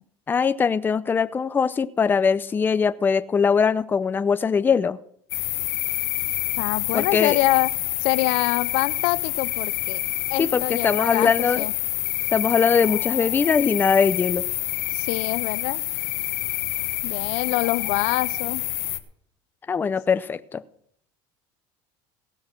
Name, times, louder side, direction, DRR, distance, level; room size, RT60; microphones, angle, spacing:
voice 1, 0.3-5.0 6.9-7.4 10.4-11.7 12.3-14.4 19.7-20.6, left 6 dB, 15° left, 14 dB, 0.5 m, -21 dB
sound 1, 5.3-19.0, left 17 dB, 90° left, 1.2 m, -27 dB
voice 2, 6.6-7.7 8.0-10.0 10.3-11.3 11.6-11.7 14.9-15.8 17.0-18.6, left 20 dB, 65° left, 18 dB, 0.5 m, -25 dB
16.5 x 6.3 x 7.6 m, 0.68 s
cardioid pair, 140°, 11 cm